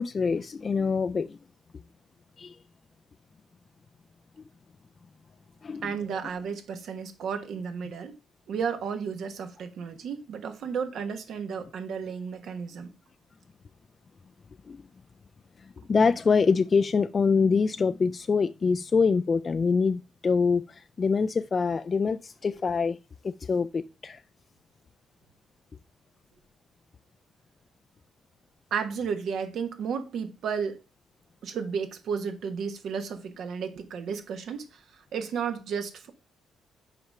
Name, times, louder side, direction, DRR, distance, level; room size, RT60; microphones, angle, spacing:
voice 1, 0.0-1.4 2.4-2.6 5.6-5.9 14.7-14.8 15.6-23.0 23.2-24.2, left 5 dB, 40° left, 0.3 m, -25 dB
voice 2, 5.8-8.1 8.5-12.9 28.7-30.8 31.4-36.1, right 6 dB, 70° right, 1.3 m, -33 dB
5.8 x 5.0 x 5.5 m
cardioid pair, 90°, 0 cm